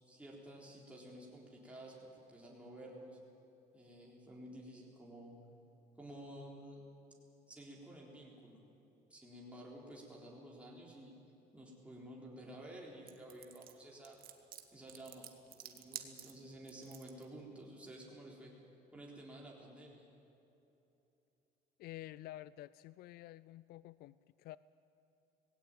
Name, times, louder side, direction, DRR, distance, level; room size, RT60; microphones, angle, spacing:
voice 1, 0.1-3.2 3.7-5.3 6.0-6.8 7.5-8.6 9.1-11.1 11.5-14.2 14.7-18.5 18.9-20.1, right 1 dB, 5° right, -4 dB, 3.9 m, -52 dB
sound 1, 13.1-17.2, right 10 dB, 60° right, 1.7 m, -50 dB
voice 2, 21.8-24.6, left 15 dB, 65° left, 18 dB, 0.4 m, -50 dB
19.0 x 17.0 x 9.2 m, 3.0 s
cardioid pair, 110°, 17 cm